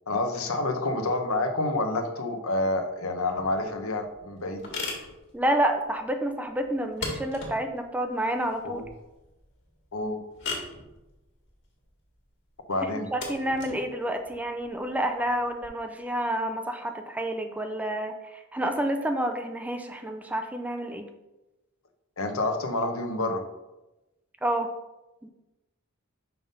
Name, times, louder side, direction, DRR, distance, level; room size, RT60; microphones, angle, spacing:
voice 1, 0.1-4.7 8.6-8.8 9.9-10.2 12.7-13.1 22.2-23.4, left 2 dB, 75° left, 5 dB, 0.8 m, -28 dB
sound 1, 3.3-15.7, left 3 dB, 55° left, 1.8 m, -40 dB
voice 2, 5.3-8.8 12.8-21.1 24.4-24.7 25.2-25.3, right 1 dB, 5° right, 6 dB, 0.4 m, -29 dB
5.7 x 3.7 x 5.3 m, 1.0 s
head